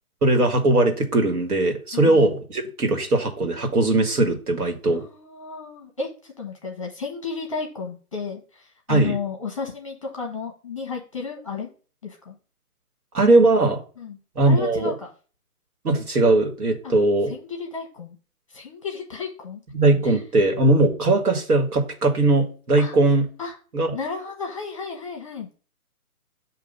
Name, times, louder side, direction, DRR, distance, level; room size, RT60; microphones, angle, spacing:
voice 1, 0.2-5.0 8.9-9.2 13.1-13.8 14.4-14.9 15.8-17.3 19.7-23.3 23.7-23.9, right 2 dB, 80° right, 4 dB, 1.8 m, -19 dB
voice 2, 1.9-2.2 4.9-11.7 12.0-12.4 14.0-14.2 14.4-15.1 16.8-16.9 17.3-18.2 18.5-19.6 20.0-20.2 22.8-23.0 23.4-23.5 23.9-25.5, left 5 dB, 20° left, 0 dB, 0.8 m, -33 dB
6.8 x 2.8 x 5.3 m, 0.38 s
hypercardioid pair, 175°, 45 cm